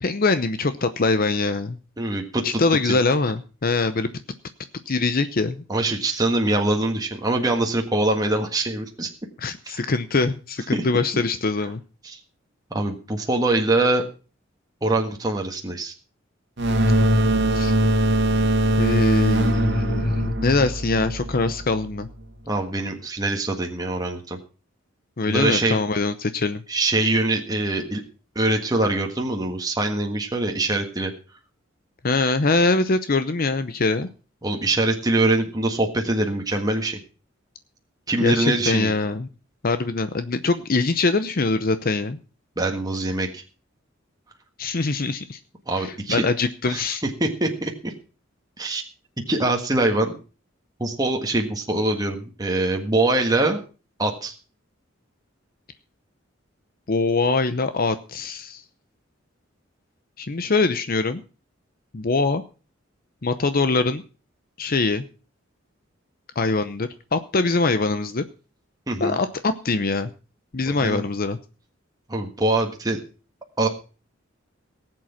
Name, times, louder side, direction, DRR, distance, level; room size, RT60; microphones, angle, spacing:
voice 1, 0.0-1.8 2.4-4.1 4.9-5.6 9.4-11.8 17.5-17.7 18.8-22.1 25.2-26.6 32.0-34.1 38.2-39.3 39.6-42.2 44.6-45.4 45.8-47.0 56.9-58.6 60.2-61.2 61.9-62.4 63.2-64.0 64.6-65.0 66.4-68.2 69.0-70.1 70.5-71.4, left 3 dB, 50° left, 11 dB, 0.8 m, -23 dB
voice 2, 2.0-2.4 2.8-3.0 5.7-9.1 9.7-9.9 10.7-10.8 12.0-12.2 12.7-14.0 14.8-15.9 22.5-24.4 25.3-25.8 26.7-28.0 28.4-31.1 34.4-37.0 38.1-38.9 42.6-43.4 45.7-46.3 46.7-47.9 48.6-48.8 49.3-50.2 50.8-53.6 54.0-54.3 68.9-69.2 70.7-71.0 72.1-73.0 73.6-73.7, right 2 dB, 20° right, 2 dB, 1.6 m, -23 dB
sound 1, 16.6-22.0, right 1 dB, 60° right, 1.8 m, -21 dB
18.5 x 7.8 x 5.8 m, 0.36 s
head